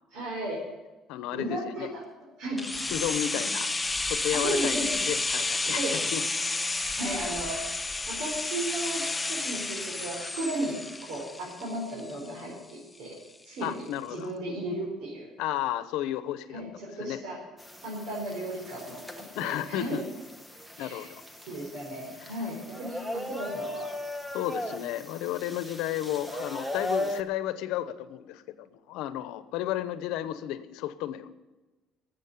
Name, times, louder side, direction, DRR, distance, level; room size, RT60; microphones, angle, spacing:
voice 1, 0.1-0.6 1.3-2.0 2.4-2.6 3.3-3.4 4.3-4.9 5.8-6.1 7.0-7.6 8.1-10.8 11.1-13.2 13.4-13.8 14.1-15.3 16.5-16.6 17.0-17.4 17.8-19.0 19.4-20.0 20.8-21.1 21.5-23.9, right 1 dB, 65° right, -5 dB, 4.8 m, -34 dB
voice 2, 1.1-1.9 2.9-3.7 4.1-6.2 13.6-14.3 15.4-16.6 17.0-17.2 19.2-20.0 20.8-21.1 22.2-22.3 24.3-31.3, left 12 dB, 85° left, 13 dB, 0.9 m, -33 dB
sound 1, 2.6-12.4 12.7-12.8, left 3 dB, 10° left, 0.5 m, -31 dB
sound 2, 17.6-27.2, left 1 dB, 5° right, 1.0 m, -38 dB
12.5 x 8.4 x 9.7 m, 1.1 s
cardioid pair, 140°, 0 cm